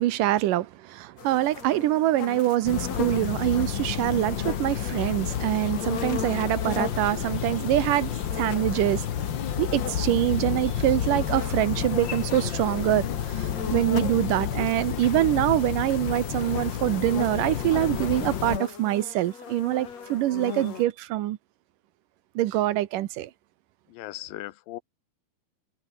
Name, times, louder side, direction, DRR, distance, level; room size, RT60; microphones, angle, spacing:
voice 1, 0.0-9.1 9.6-21.4 22.4-23.3, right 14 dB, 75° right, 2.5 m, -25 dB
sound 1, 1.2-14.9 15.7-20.9, left 6 dB, 50° left, 4.0 m, -38 dB
sound 2, 2.6-18.6, left 9 dB, 70° left, 1.1 m, -30 dB
voice 2, 23.9-24.8, left 16 dB, 85° left, 2.6 m, -38 dB
omnidirectional pair, 4.1 m